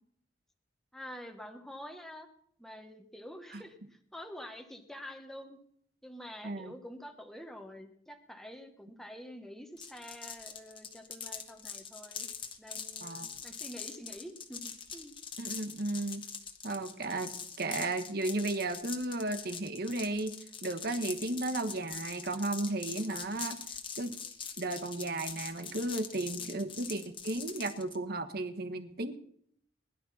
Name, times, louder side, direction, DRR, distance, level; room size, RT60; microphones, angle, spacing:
voice 1, 0.9-2.3 2.6-5.6 6.0-12.3 12.6-15.2 26.4-26.6, equal, ahead, 4 dB, 1.3 m, -47 dB
voice 2, 6.4-6.7 13.0-13.3 15.4-16.3 16.6-24.1 24.6-29.2, right 2 dB, 60° right, 9 dB, 1.3 m, -34 dB
sound 1, 9.8-28.0, left 6 dB, 30° left, 1.3 m, -43 dB
21.0 x 11.5 x 4.2 m, 0.65 s
head